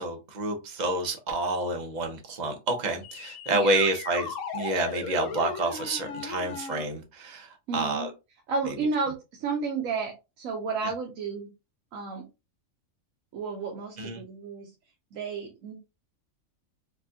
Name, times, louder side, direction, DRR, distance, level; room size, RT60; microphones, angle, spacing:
voice 1, 0.0-8.1 8.7-8.8 14.0-14.2, right 2 dB, 40° right, 0.8 m, -29 dB
sound 1, 3.0-6.8, left 6 dB, 70° left, 1.0 m, -37 dB
voice 2, 7.7-8.1 8.5-11.5 11.9-12.2 13.3-14.7 15.1-15.7, right 4 dB, 75° right, 1.1 m, -32 dB
4.4 x 2.3 x 2.7 m
omnidirectional pair, 1.4 m